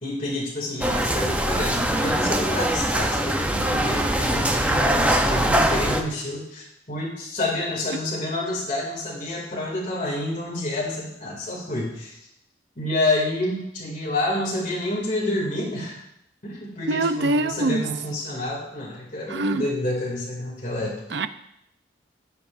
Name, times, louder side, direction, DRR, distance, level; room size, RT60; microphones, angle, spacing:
voice 1, 0.0-12.2 12.8-16.0 16.4-21.0, left 1 dB, 45° left, -5 dB, 2.5 m, -28 dB
sound 1, 0.8-6.0, right 1 dB, 10° right, 0.6 m, -22 dB
voice 2, 16.9-17.9 19.3-19.7 21.1-21.3, right 2 dB, 75° right, 11 dB, 0.6 m, -23 dB
16.5 x 5.8 x 2.6 m, 0.79 s
head